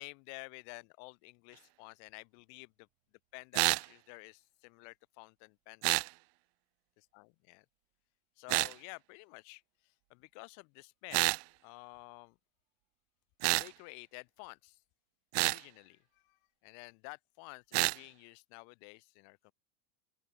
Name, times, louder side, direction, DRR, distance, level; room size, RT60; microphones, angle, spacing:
voice 1, 0.0-2.9 3.3-6.0 7.1-7.7 8.4-11.3 11.6-12.4 13.6-14.8 15.4-19.5, left 39 dB, 40° left, 4.1 m, -51 dB
sound 1, 3.5-3.9 5.8-6.1 8.5-8.7 11.1-11.4 13.4-13.7 15.3-15.6 17.7-18.0, right 39 dB, 35° right, 1.3 m, -28 dB
open air
supercardioid pair, 175°, 43 cm